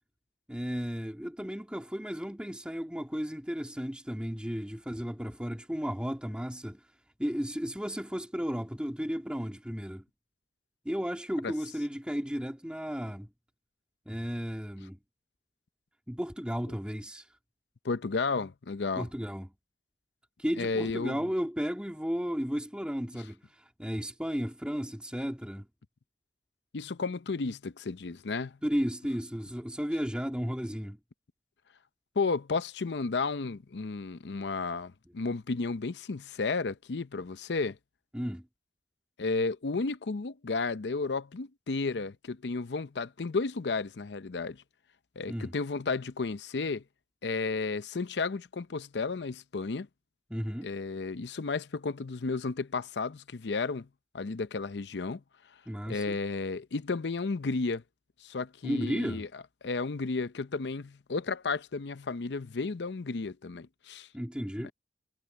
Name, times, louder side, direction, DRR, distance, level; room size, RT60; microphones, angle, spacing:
voice 1, 0.5-6.9 7.2-10.0 10.8-13.3 14.1-15.0 16.1-17.3 19.0-19.5 20.4-25.7 28.6-31.0 38.1-38.5 45.3-45.5 50.3-50.7 55.7-56.2 58.6-59.2 64.1-64.7, equal, 5° right, 2.2 m, -34 dB
voice 2, 17.8-19.1 20.6-21.2 26.7-28.6 32.2-37.8 39.2-44.6 45.2-46.8 47.2-49.9 50.6-53.9 54.1-55.2 55.9-57.8 58.2-59.3 59.6-64.1 64.6-64.7, left 4 dB, 80° left, 0.6 m, -33 dB
head